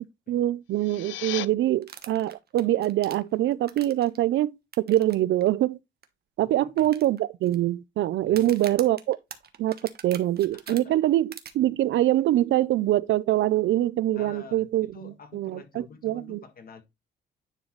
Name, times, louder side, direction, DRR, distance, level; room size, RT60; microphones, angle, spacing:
voice 1, 0.0-5.8 6.4-9.2 9.6-9.8 10.0-14.9 15.3-16.4, right 14 dB, 70° right, 0.5 m, -24 dB
sound 1, 0.6-1.5, left 15 dB, 80° left, 0.5 m, -35 dB
sound 2, 1.8-4.2 4.7-5.1 5.4-5.5 6.0-6.1 6.8-7.5 8.3-10.8 11.3-11.5, right 8 dB, 50° right, 1.1 m, -43 dB
voice 2, 6.4-6.9 8.2-8.5 10.5-11.0 14.1-16.8, left 5 dB, 50° left, 1.7 m, -48 dB
10.0 x 4.0 x 3.1 m
cardioid pair, 90°, 20 cm